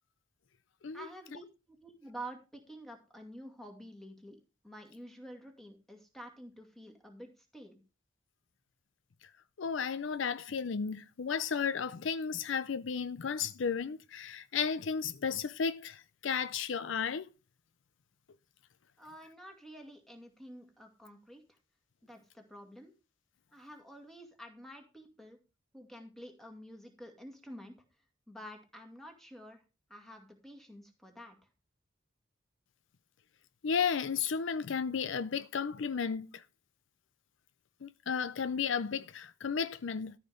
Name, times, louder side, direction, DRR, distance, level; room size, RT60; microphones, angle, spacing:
voice 1, 0.9-4.4 4.6-7.8 19.0-21.4 22.0-22.9 23.5-25.4 25.7-27.7 28.3-29.6 29.9-31.4, right 1 dB, ahead, 2.3 m, -49 dB
voice 2, 9.6-17.3 33.6-36.4 37.8-40.1, left 6 dB, 70° left, 0.5 m, -33 dB
13.5 x 5.8 x 5.0 m
head